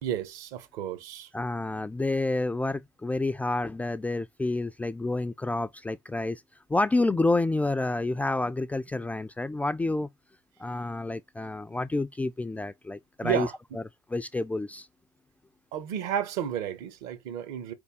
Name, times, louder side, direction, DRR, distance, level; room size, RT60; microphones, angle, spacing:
voice 1, 0.0-1.3 13.2-13.5 15.7-17.7, right 10 dB, 65° right, 1.0 m, -32 dB
voice 2, 1.3-6.4 6.7-10.1 10.6-13.5 14.1-14.9, left 2 dB, 10° left, 0.3 m, -29 dB
4.1 x 3.4 x 3.6 m
hypercardioid pair, 70°, 15 cm